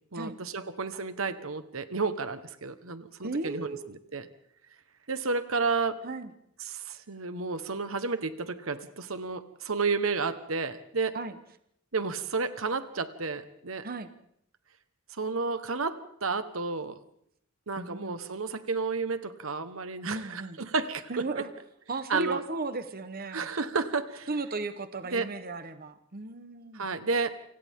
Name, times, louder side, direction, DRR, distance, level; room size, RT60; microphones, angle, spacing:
voice 1, 0.1-4.3 5.1-6.0 6.6-11.2 11.9-13.9 15.1-17.0 17.7-21.3 22.1-22.4 23.3-24.3 25.1-25.3 26.7-27.4, right 4 dB, 85° right, 11 dB, 1.4 m, -31 dB
voice 2, 3.2-3.9 6.0-6.3 11.1-11.3 13.8-14.1 17.8-18.3 20.0-20.6 21.1-21.5 21.9-23.5 24.3-26.9, right 3 dB, 45° right, 10 dB, 1.1 m, -35 dB
29.0 x 26.0 x 3.7 m, 0.73 s
head